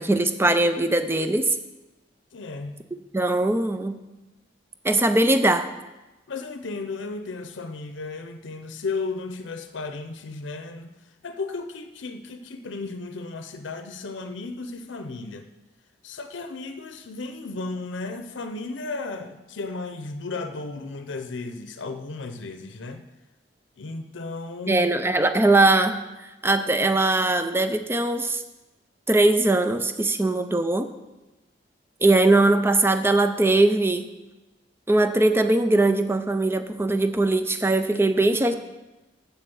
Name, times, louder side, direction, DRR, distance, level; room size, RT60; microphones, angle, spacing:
voice 1, 0.0-1.6 3.1-4.0 4.8-5.7 24.7-28.4 29.1-30.9 32.0-34.1 34.9-38.5, right 2 dB, 15° right, 9 dB, 0.5 m, -21 dB
voice 2, 2.3-2.7 6.3-10.9 11.2-15.5 16.0-23.0 23.8-24.9 38.3-38.5, left 3 dB, 90° left, 8 dB, 0.6 m, -34 dB
7.4 x 7.1 x 6.9 m, 1.1 s
head